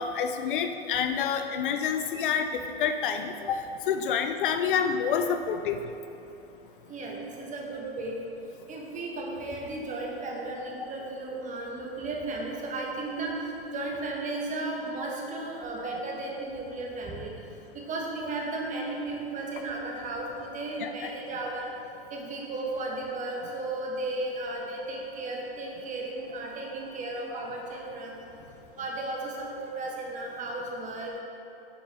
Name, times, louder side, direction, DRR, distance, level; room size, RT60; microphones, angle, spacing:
voice 1, 0.0-3.6 3.9-5.8 20.8-21.1, left 7 dB, 55° left, 7 dB, 0.5 m, -28 dB
voice 2, 6.9-8.2 8.7-13.4 13.7-17.3 17.7-21.7 22.1-28.1 28.8-31.2, right 2 dB, 25° right, -1 dB, 1.5 m, -34 dB
9.2 x 6.9 x 3.7 m, 2.9 s
figure-of-eight pair, 95°, 31 cm